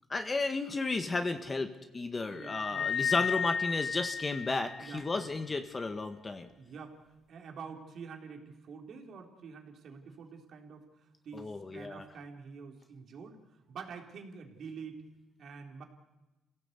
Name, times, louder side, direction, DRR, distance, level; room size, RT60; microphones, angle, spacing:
voice 1, 0.1-6.5 11.3-12.0, left 3 dB, 30° left, 7 dB, 1.7 m, -33 dB
voice 2, 2.3-3.2 4.8-5.6 6.5-6.9 7.3-15.0 15.4-15.8, right 5 dB, 65° right, 3 dB, 3.9 m, -47 dB
sound 1, 2.4-5.1, left 7 dB, 60° left, 1.4 m, -33 dB
28.5 x 16.5 x 8.3 m, 1.1 s
cardioid pair, 90°, 0 cm